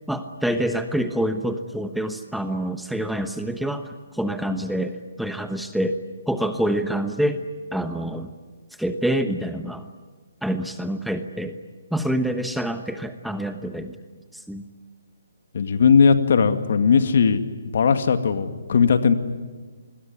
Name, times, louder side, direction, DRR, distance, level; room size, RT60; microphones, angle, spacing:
voice 1, 0.1-6.0 6.3-7.4 7.7-8.3 8.8-9.9 10.4-11.6 11.9-14.0 14.3-14.7, right 1 dB, ahead, 8 dB, 1.1 m, -26 dB
voice 2, 15.5-17.4 17.7-19.1, left 6 dB, 60° left, 8 dB, 2.1 m, -18 dB
27.5 x 21.0 x 9.6 m, 1.4 s
hypercardioid pair, 145°, 0 cm